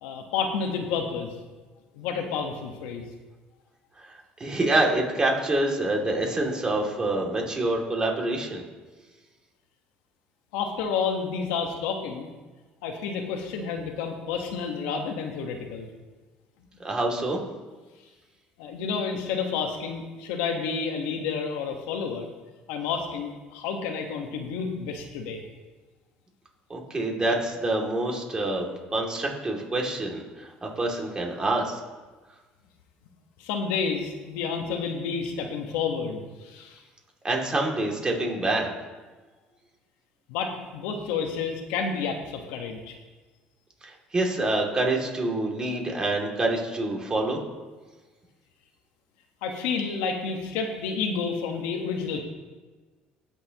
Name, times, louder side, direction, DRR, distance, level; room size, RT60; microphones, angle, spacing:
voice 1, 0.0-1.3 1.9-3.1 10.5-12.3 12.8-15.9 18.6-22.3 22.7-25.4 33.4-36.8 40.3-42.9 49.4-52.2, left 5 dB, 90° left, 3 dB, 1.3 m, -30 dB
voice 2, 4.4-8.6 16.8-17.4 26.7-31.8 37.2-38.7 43.8-47.4, right 2 dB, 25° right, 0 dB, 2.5 m, -26 dB
18.5 x 6.7 x 3.0 m, 1.3 s
supercardioid pair, 100°, 3 cm